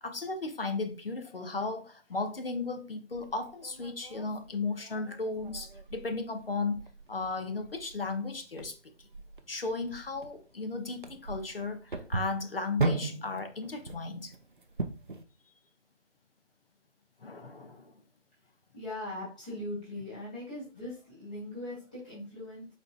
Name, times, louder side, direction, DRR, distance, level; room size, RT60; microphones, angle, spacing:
voice 1, 0.0-8.9 9.5-14.3 17.2-17.9, left 3 dB, 50° left, 0.7 m, -35 dB
sound 1, 3.1-15.2, right 3 dB, 45° right, 0.4 m, -38 dB
voice 2, 18.7-22.7, left 1 dB, 5° left, 0.8 m, -40 dB
4.4 x 4.1 x 2.3 m
figure-of-eight pair, 155°, 37 cm